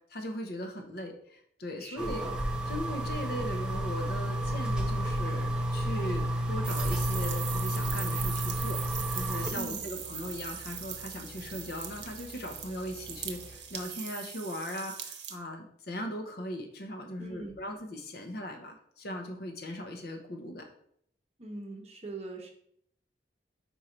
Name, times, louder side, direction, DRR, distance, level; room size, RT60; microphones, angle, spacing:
voice 1, 0.1-2.2 2.7-20.7, equal, 60° left, 4 dB, 0.9 m, -39 dB
voice 2, 1.8-2.4 9.5-9.9 17.2-17.6 21.4-22.5, right 2 dB, 35° right, 2 dB, 0.9 m, -41 dB
sound 1, 2.0-9.5, equal, 5° right, 0.7 m, -31 dB
sound 2, 2.5-14.1, equal, 85° left, 2.1 m, -50 dB
sound 3, 6.6-15.4, right 8 dB, 70° right, 0.8 m, -40 dB
4.6 x 4.3 x 5.1 m, 0.67 s
head